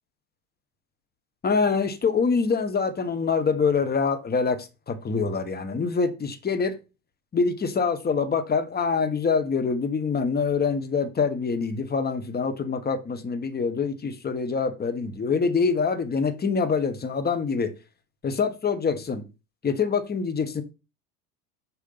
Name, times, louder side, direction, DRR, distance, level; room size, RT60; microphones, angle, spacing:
voice 1, 1.4-6.7 7.3-17.7 18.2-19.2 19.6-20.6, left 5 dB, 20° left, 1.3 m, -25 dB
6.7 x 4.4 x 5.5 m
hypercardioid pair, 95°, 45 cm